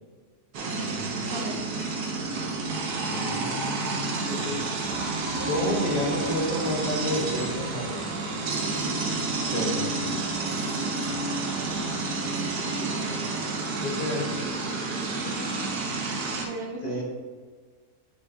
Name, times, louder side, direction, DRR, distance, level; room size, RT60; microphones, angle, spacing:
sound 1, 0.5-16.5, right 3 dB, 90° right, 1.4 m, -30 dB
voice 1, 0.7-1.3 2.9-4.6 5.0-5.2 5.4-8.0 9.5-9.9 12.7-13.0 13.3-14.4 16.8-17.0, left 1 dB, 30° left, -3 dB, 1.0 m, -31 dB
voice 2, 1.3-1.6 5.4-5.5 15.1-15.9 16.4-17.0, right 2 dB, 55° right, 2 dB, 0.8 m, -39 dB
sound 2, 4.6-12.1, left 1 dB, 5° right, 1.3 m, -44 dB
6.9 x 5.6 x 2.6 m, 1.5 s
omnidirectional pair, 1.6 m